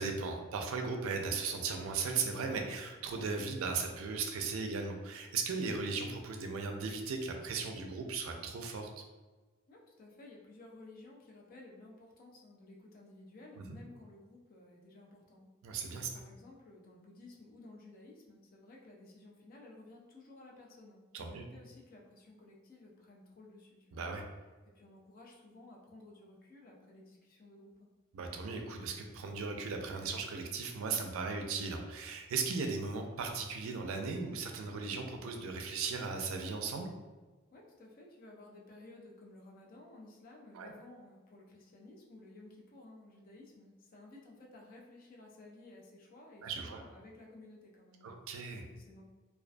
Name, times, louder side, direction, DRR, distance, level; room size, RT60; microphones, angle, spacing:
voice 1, 0.0-8.9 13.6-13.8 15.6-16.1 21.1-21.4 23.9-24.2 28.1-36.9 40.5-40.7 46.4-46.8 48.0-48.7, right 4 dB, 80° right, 4 dB, 0.4 m, -37 dB
voice 2, 9.7-15.5 16.0-24.0 24.7-27.9 37.5-48.1 48.7-49.0, left 2 dB, 45° left, -1 dB, 0.5 m, -55 dB
2.3 x 2.2 x 2.5 m, 1.3 s
head